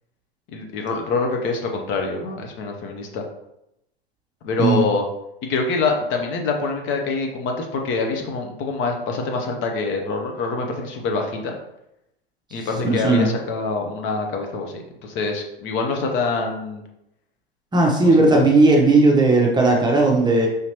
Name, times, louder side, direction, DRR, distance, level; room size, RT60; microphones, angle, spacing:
voice 1, 0.5-3.2 4.4-5.1 5.4-11.6 12.5-16.8 18.3-18.4, left 3 dB, 40° left, 2 dB, 0.7 m, -25 dB
voice 2, 12.8-13.3 17.7-20.5, right 2 dB, 15° right, 0 dB, 0.7 m, -16 dB
4.9 x 2.9 x 2.9 m, 0.85 s
hypercardioid pair, 90°, 30 cm